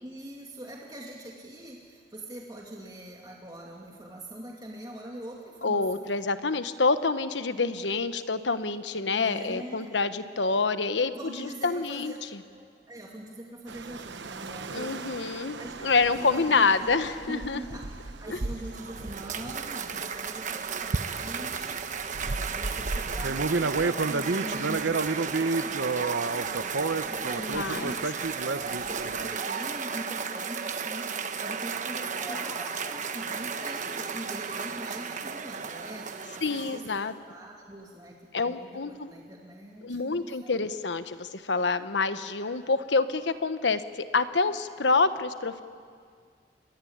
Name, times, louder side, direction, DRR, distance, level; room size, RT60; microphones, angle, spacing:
voice 1, 0.0-6.1 9.1-9.9 11.1-12.2 12.5-15.1 15.6-17.9 18.2-22.0 22.2-25.8 26.2-31.1 31.4-40.6, right 1 dB, 25° right, -2 dB, 2.4 m, -43 dB
voice 2, 5.6-12.4 14.7-17.6 18.3-18.4 24.4-25.0 27.4-27.9 36.4-37.1 38.3-39.1 39.8-45.6, left 4 dB, 85° left, 11 dB, 1.2 m, -27 dB
sound 1, 13.7-20.4 20.9-29.4, right 3 dB, 90° right, 0.9 m, -32 dB
Cheering / Applause, 18.5-37.1, right 6 dB, 45° right, 1.1 m, -34 dB
sound 2, 31.8-33.6, left 1 dB, 20° left, 1.4 m, -45 dB
29.0 x 21.5 x 8.8 m, 2.1 s
head